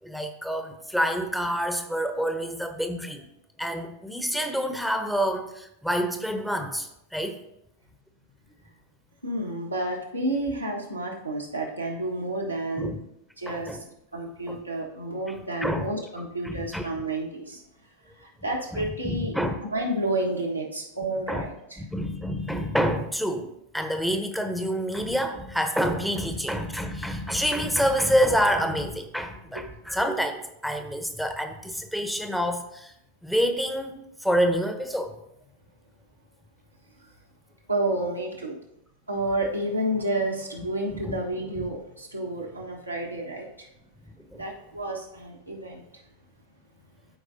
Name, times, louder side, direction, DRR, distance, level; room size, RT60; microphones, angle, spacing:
voice 1, 0.0-3.3 3.6-7.4 12.8-13.0 13.5-13.8 14.5-14.6 15.6-15.9 16.4-16.9 18.7-19.6 21.3-21.5 21.8-23.5 23.7-32.9 33.2-35.2 41.0-41.2 41.5-41.7 44.2-44.4, equal, ahead, 7 dB, 0.7 m, -27 dB
voice 2, 9.2-13.0 13.4-13.8 14.1-17.6 18.2-19.3 19.7-21.8 29.5-29.6 37.7-38.6 39.1-43.7 44.3-45.8, right 1 dB, 90° right, -2 dB, 1.3 m, -30 dB
12.5 x 4.7 x 2.6 m, 0.81 s
figure-of-eight pair, 90°, 0 cm